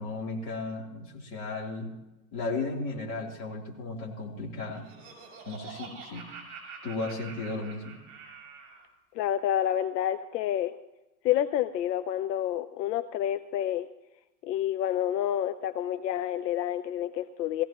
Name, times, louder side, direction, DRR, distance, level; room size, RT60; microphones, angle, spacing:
voice 1, 0.0-1.9 2.3-4.9 5.5-6.2 6.8-8.0, left 3 dB, 35° left, -2 dB, 3.6 m, -35 dB
Laughter, 4.4-8.9, right 5 dB, 30° right, 6.4 m, -46 dB
voice 2, 9.1-10.7 11.2-13.9 14.4-17.6, left 11 dB, 80° left, 11 dB, 0.8 m, -29 dB
20.0 x 16.0 x 3.1 m, 0.99 s
supercardioid pair, 155°, 49 cm